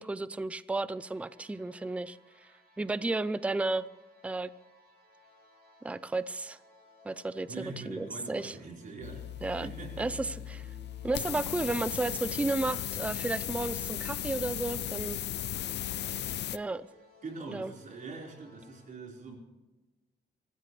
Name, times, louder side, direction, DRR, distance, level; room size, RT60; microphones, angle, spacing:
voice 1, 0.0-2.2 2.8-3.9 4.2-4.5 5.8-6.6 7.0-8.5 9.4-9.7 10.0-10.6 11.0-15.2 16.5-16.9 17.5-17.7, right 2 dB, 5° right, 16 dB, 0.4 m, -33 dB
sound 1, 0.9-18.8, right 2 dB, 65° right, 6.9 m, -59 dB
voice 2, 7.5-10.3 17.2-19.4, right 3 dB, 50° right, -1 dB, 4.6 m, -43 dB
sound 2, 9.0-16.6, left 12 dB, 85° left, 0.5 m, -36 dB
25.0 x 15.0 x 3.3 m, 1.1 s
wide cardioid pair, 165°, 17 cm